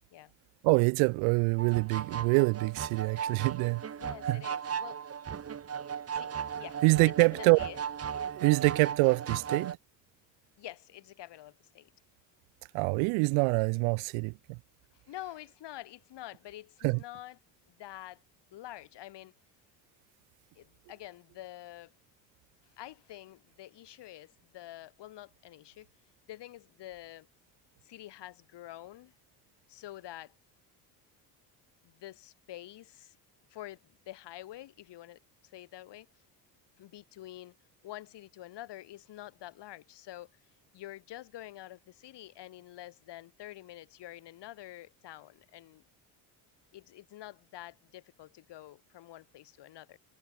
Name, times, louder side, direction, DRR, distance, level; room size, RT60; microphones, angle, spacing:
voice 1, 0.6-3.8 4.3-4.4 6.8-7.6 8.4-9.7 12.7-14.6 16.8-17.0, right 34 dB, 75° right, 0.7 m, -25 dB
sound 1, 1.6-9.8, right 7 dB, 30° right, 1.2 m, -37 dB
voice 2, 4.0-5.0 6.1-7.8 10.6-11.9 15.1-17.4 17.7-18.2 18.5-19.3 20.6-21.9 22.8-25.9 26.3-27.3 27.8-29.1 29.7-30.3 31.8-33.2 33.5-33.8 34.1-36.1 36.8-37.6 37.8-40.3 40.7-45.8 46.7-50.0, left 14 dB, 60° left, 1.8 m, -47 dB
supercardioid pair, 70°, 48 cm